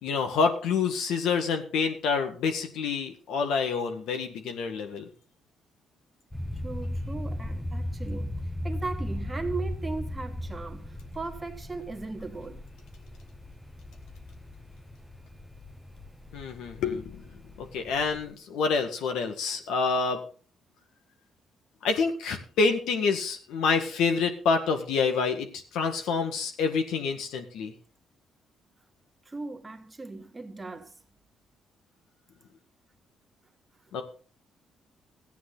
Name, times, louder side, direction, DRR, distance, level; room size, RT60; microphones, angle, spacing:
voice 1, 0.0-5.1 16.3-17.2 17.6-20.2 21.8-27.7 33.9-34.0, left 5 dB, 85° left, 1.9 m, -27 dB
sound 1, 6.3-18.3, left 1 dB, 10° left, 1.0 m, -37 dB
voice 2, 6.6-12.6 29.2-31.0 33.9-34.0, right 3 dB, 20° right, 1.6 m, -38 dB
15.0 x 9.4 x 4.0 m
cardioid pair, 90°, 0 cm